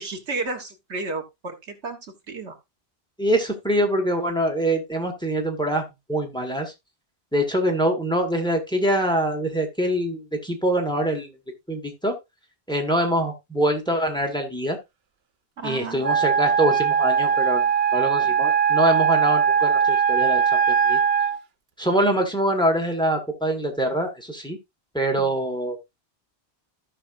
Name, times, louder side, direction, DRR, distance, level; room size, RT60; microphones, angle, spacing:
voice 1, 0.0-2.0 2.3-2.6 15.6-16.1 25.2-25.4, right 3 dB, 90° right, 5 dB, 1.8 m, -32 dB
voice 2, 3.2-6.7 7.3-11.3 11.7-12.1 12.7-14.8 15.6-17.6 17.9-21.0 21.8-24.6 24.9-25.8, right 1 dB, 5° left, 3 dB, 1.6 m, -24 dB
Wind instrument woodwind instrument, 16.0-21.4, right 7 dB, 65° right, 0.8 m, -20 dB
15.0 x 5.6 x 2.6 m, 0.22 s
omnidirectional pair, 1.1 m